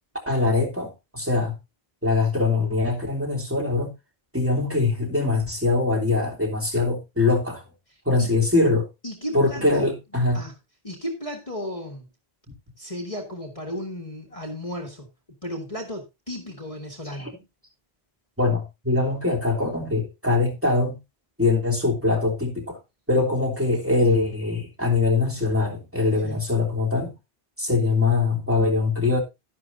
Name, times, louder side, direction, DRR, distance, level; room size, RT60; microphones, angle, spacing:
voice 1, 0.3-1.5 2.0-3.9 4.3-7.6 8.0-8.9 9.3-10.4 17.2-17.3 18.4-21.0 21.4-22.8 23.1-27.1 27.6-29.2, left 3 dB, 10° right, 3.4 m, -22 dB
voice 2, 7.9-8.3 9.0-9.9 10.3-10.5 10.8-12.1 12.8-15.1 15.4-17.3 26.2-26.4, equal, 35° left, 1.9 m, -34 dB
12.0 x 11.0 x 2.7 m
omnidirectional pair, 1.1 m